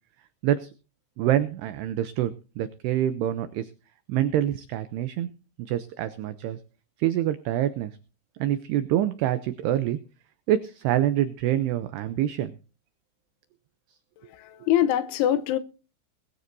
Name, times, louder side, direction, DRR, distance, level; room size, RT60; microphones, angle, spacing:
voice 1, 1.2-3.7 4.1-5.3 5.6-6.6 7.0-8.0 8.4-10.0 10.5-12.6, right 12 dB, 90° right, 2.3 m, -26 dB
voice 2, 14.2-15.6, left 11 dB, 80° left, 3.2 m, -24 dB
21.0 x 14.0 x 2.7 m
omnidirectional pair, 5.7 m